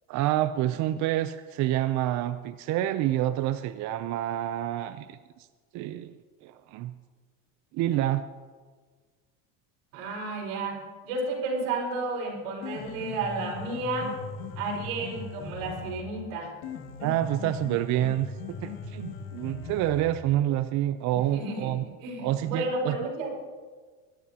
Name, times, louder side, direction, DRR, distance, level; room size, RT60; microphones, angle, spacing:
voice 1, 0.1-5.2 5.7-6.1 6.4-6.9 7.7-8.2 17.0-21.8 22.2-23.0, right 13 dB, 45° right, 11 dB, 0.5 m, -28 dB
voice 2, 9.9-14.1 14.6-16.5 21.1-21.7 22.0-23.3, right 2 dB, 80° right, -1 dB, 5.0 m, -32 dB
Piano, 12.4-20.4, left 4 dB, 75° left, 2.4 m, -39 dB
22.0 x 12.5 x 2.9 m, 1.5 s
supercardioid pair, 115°, 39 cm